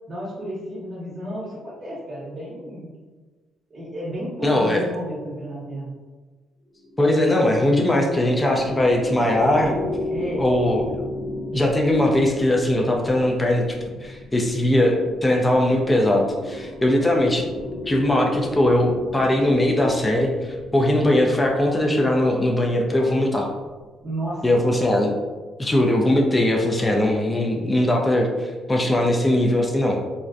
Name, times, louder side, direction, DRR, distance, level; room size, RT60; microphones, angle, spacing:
voice 1, 0.1-2.9 3.7-5.9 10.1-10.4 24.0-24.8, right 1 dB, 40° right, -9 dB, 0.7 m, -32 dB
voice 2, 4.4-4.8 7.0-9.7 10.4-10.8 11.5-13.8 14.0-17.5 17.9-23.5 24.4-25.1 25.6-30.0, left 1 dB, 15° left, 0 dB, 0.4 m, -20 dB
sound 1, 6.7-24.2, left 1 dB, 35° left, 0.8 m, -36 dB
2.5 x 2.0 x 2.4 m, 1.3 s
cardioid pair, 90°, 0 cm